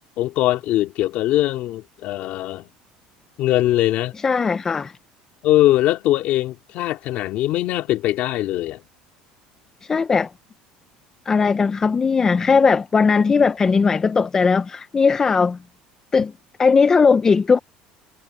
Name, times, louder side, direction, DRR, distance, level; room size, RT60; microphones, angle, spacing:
voice 1, 0.2-2.7 3.4-4.1 5.4-8.8, left 15 dB, 55° left, 2.6 m, -21 dB
voice 2, 4.2-4.9 9.9-10.3 11.3-15.6 16.1-16.3 16.6-17.6, left 5 dB, 20° left, 0.6 m, -18 dB
cardioid pair, 155°, 3 cm